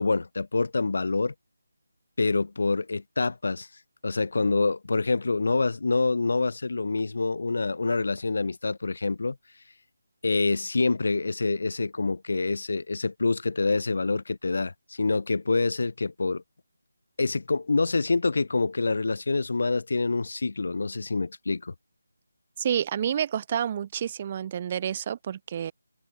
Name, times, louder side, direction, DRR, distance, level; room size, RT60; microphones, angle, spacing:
voice 1, 0.0-1.3 2.2-3.7 4.0-9.4 10.2-16.4 17.2-21.7, left 3 dB, 55° left, 3.2 m, -26 dB
voice 2, 22.6-25.7, right 9 dB, 30° right, 1.3 m, -29 dB
figure-of-eight pair, 160°, 0 cm